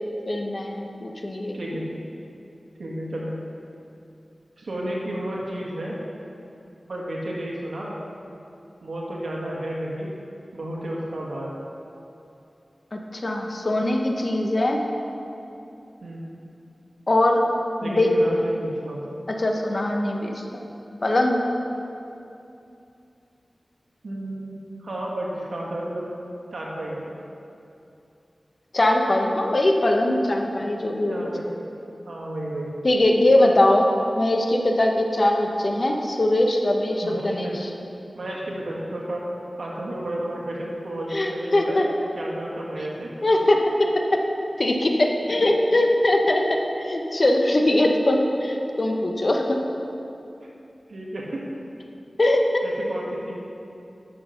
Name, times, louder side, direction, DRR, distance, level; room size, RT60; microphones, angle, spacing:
voice 1, 0.3-1.6 12.9-14.8 17.1-17.4 17.8-18.1 19.4-20.4 21.0-21.4 28.7-31.3 32.8-37.5 41.1-41.9 43.2-43.9 44.6-46.4 46.8-49.6 52.2-52.6, left 1 dB, 45° left, 2 dB, 1.1 m, -21 dB
voice 2, 1.5-1.9 2.8-3.3 4.6-6.0 6.9-8.0 8.8-10.1 10.5-11.5 16.0-16.3 17.8-19.0 24.0-24.5 24.8-26.1 26.5-27.1 31.1-31.5 32.1-32.7 37.0-37.6 38.1-39.2 39.6-41.8 42.1-43.1 50.9-51.6 52.6-53.3, right 1 dB, 85° right, -3 dB, 1.9 m, -32 dB
10.5 x 6.7 x 5.8 m, 2.8 s
wide cardioid pair, 70°, 0 cm